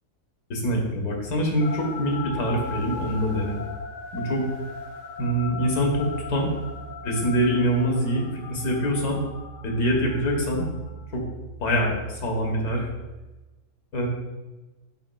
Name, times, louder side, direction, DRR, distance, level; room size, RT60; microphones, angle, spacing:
voice 1, 0.5-3.6 4.1-4.4 5.2-6.5 7.0-9.2 9.6-10.7 11.1-11.2 11.6-12.9 13.9-14.1, equal, 85° left, 0 dB, 1.7 m, -24 dB
sound 1, 1.6-11.1, left 5 dB, 60° left, 1.0 m, -39 dB
8.1 x 6.2 x 2.3 m, 1.1 s
omnidirectional pair, 1.6 m